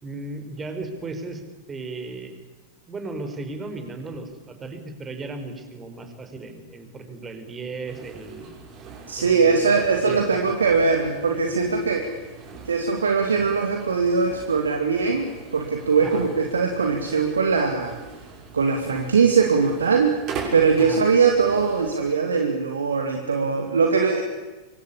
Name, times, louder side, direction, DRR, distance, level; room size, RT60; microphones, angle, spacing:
voice 1, 0.0-1.4 1.7-2.4 2.9-8.6 9.2-10.5 16.0-16.2 20.8-21.0, right 3 dB, 20° right, 7 dB, 4.9 m, -36 dB
sound 1, 7.9-22.1, right 4 dB, 35° right, 7.2 m, -41 dB
voice 2, 9.1-12.1 12.7-18.0 18.5-20.2 20.5-24.2, right 5 dB, 70° right, 4 dB, 2.5 m, -21 dB
25.5 x 25.0 x 8.6 m, 1.2 s
figure-of-eight pair, 90°, 0 cm